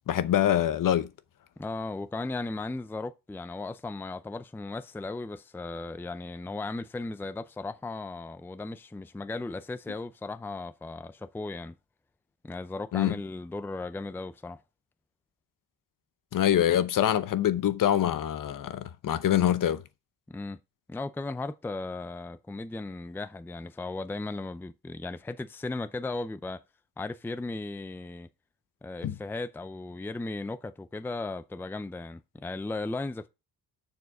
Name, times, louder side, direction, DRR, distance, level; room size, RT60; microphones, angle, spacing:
voice 1, 0.1-1.1 12.9-13.2 16.3-19.8 29.0-29.1, left 11 dB, 55° left, 0.8 m, -25 dB
voice 2, 1.6-11.7 12.4-14.6 20.3-20.6 20.9-26.6 27.0-28.3 28.8-33.3, left 3 dB, 5° left, 0.5 m, -36 dB
7.0 x 6.7 x 4.8 m
cardioid pair, 120°, 38 cm